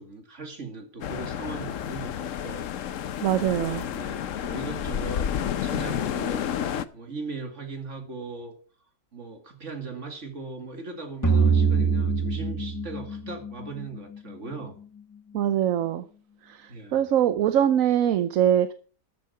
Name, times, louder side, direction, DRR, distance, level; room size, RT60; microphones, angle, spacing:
voice 1, 0.0-2.9 3.4-8.5 9.1-14.8 16.7-17.0, right 4 dB, 50° right, 2.6 m, -39 dB
sound 1, 1.0-6.9, left 9 dB, 60° left, 1.0 m, -30 dB
voice 2, 3.2-3.8 15.3-16.1 16.4-18.7, right 10 dB, 65° right, 1.0 m, -23 dB
sound 2, 11.2-14.5, right 5 dB, 10° left, 1.5 m, -24 dB
13.0 x 7.8 x 5.7 m
omnidirectional pair, 1.7 m